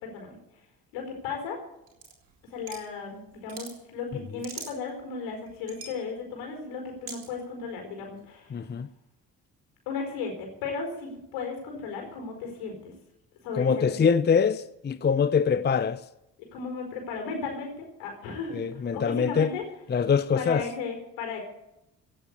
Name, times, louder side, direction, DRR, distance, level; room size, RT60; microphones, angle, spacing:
voice 1, 0.0-0.4 0.9-1.6 2.5-8.6 9.9-10.3 10.6-12.9 13.4-13.7 14.0-14.1 16.5-19.6 20.3-21.4, left 5 dB, 75° left, 4.8 m, -35 dB
sound 1, 1.9-2.9 3.3-3.7 4.2-5.0 5.5-6.0 7.1-7.3, right 5 dB, 85° right, 2.5 m, -41 dB
voice 2, 8.5-8.9 13.6-16.0 18.5-19.5 19.9-20.7, left 6 dB, 25° left, 0.7 m, -24 dB
17.0 x 7.6 x 8.5 m
hypercardioid pair, 45°, 45 cm